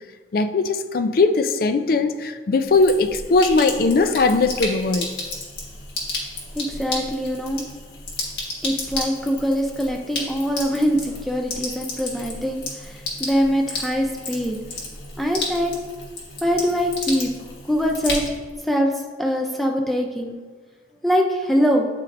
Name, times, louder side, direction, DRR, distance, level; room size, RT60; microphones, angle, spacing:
voice 1, 0.3-5.1, left 3 dB, 55° left, 9 dB, 0.4 m, -19 dB
Sink (filling or washing), 2.6-18.6, left 2 dB, 85° left, 1.6 m, -32 dB
voice 2, 6.5-7.6 8.6-14.6 15.2-15.7 16.4-17.3 17.7-18.2 18.7-18.9 19.2-20.4 21.0-21.9, equal, ahead, 1 dB, 0.5 m, -23 dB
9.6 x 4.3 x 2.6 m, 1.4 s
head